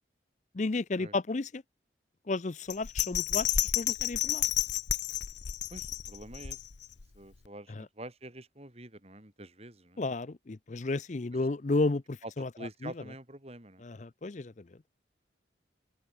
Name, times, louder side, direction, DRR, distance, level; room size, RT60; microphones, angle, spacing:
voice 1, 0.5-1.6 2.3-3.5 3.8-4.4 7.8-7.9 10.0-12.5 12.8-12.9 13.8-14.7, left 3 dB, 40° left, 0.6 m, -32 dB
Bell, 2.7-7.0 7.4-7.5, left 11 dB, 75° left, 0.9 m, -31 dB
voice 2, 5.7-6.6 7.1-10.0 11.3-11.5 12.2-13.8, right 1 dB, 35° right, 3.7 m, -46 dB
open air
head